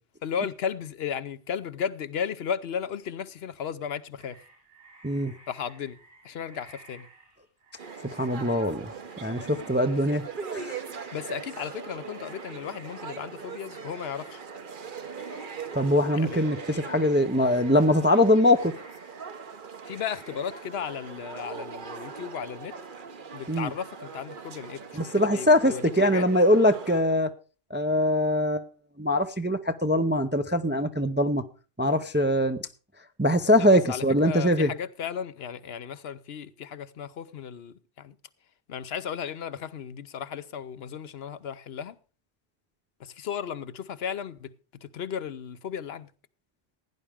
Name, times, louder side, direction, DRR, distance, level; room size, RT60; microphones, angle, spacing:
voice 1, 0.2-4.4 5.5-6.0 6.2-7.1 11.1-14.4 16.2-16.5 19.9-22.7 23.3-26.3 33.6-38.1 38.7-42.0 43.0-44.5 44.8-46.1, left 7 dB, 65° left, 1.0 m, -35 dB
sound 1, 4.2-20.9, right 2 dB, 75° right, 5.4 m, -54 dB
sound 2, 7.8-27.0, right 5 dB, 50° right, 1.0 m, -41 dB
voice 2, 8.1-8.9 9.2-10.2 10.5-10.8 15.7-18.7 23.5-23.7 24.9-27.3 27.7-28.7 29.0-31.4 31.8-32.6 33.2-34.7, left 1 dB, 15° right, 0.5 m, -22 dB
16.0 x 10.0 x 3.5 m
omnidirectional pair, 1.1 m